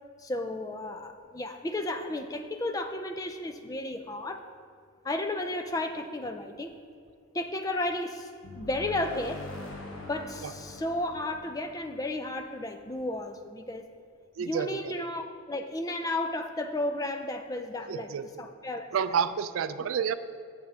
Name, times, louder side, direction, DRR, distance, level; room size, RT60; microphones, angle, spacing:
voice 1, 0.2-4.5 5.0-6.8 7.3-9.4 10.1-13.9 14.4-18.1 18.4-18.9, left 1 dB, 15° left, 7 dB, 0.4 m, -33 dB
sound 1, 8.4-13.0, left 2 dB, 80° left, 1.1 m, -44 dB
voice 2, 14.4-15.0 17.9-18.3 18.9-20.1, right 7 dB, 85° right, 13 dB, 0.4 m, -29 dB
7.5 x 5.8 x 5.4 m, 2.2 s
head